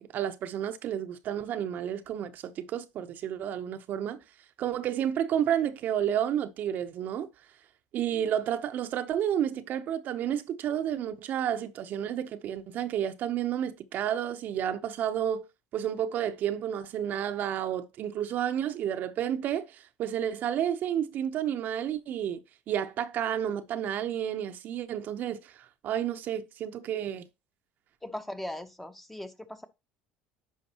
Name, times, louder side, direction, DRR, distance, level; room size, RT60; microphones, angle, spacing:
voice 1, 0.0-4.2 4.6-7.3 7.9-15.4 15.7-22.4 22.7-27.3, right 10 dB, 55° right, 0.7 m, -31 dB
voice 2, 28.0-29.7, left 1 dB, 5° left, 0.9 m, -39 dB
10.0 x 5.1 x 2.9 m
supercardioid pair, 85°, 4 cm